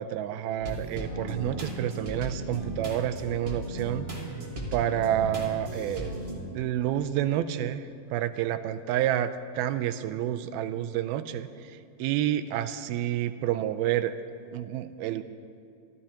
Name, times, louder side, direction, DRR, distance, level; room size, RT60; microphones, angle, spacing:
voice 1, 0.0-4.1 4.7-6.2 6.5-7.8 8.1-11.5 12.0-14.1 14.5-15.2, right 11 dB, 90° right, 10 dB, 2.5 m, -29 dB
sound 1, 0.6-6.4, right 1 dB, 50° right, 0.6 m, -36 dB
24.5 x 14.0 x 2.9 m, 2.5 s
omnidirectional pair, 4.3 m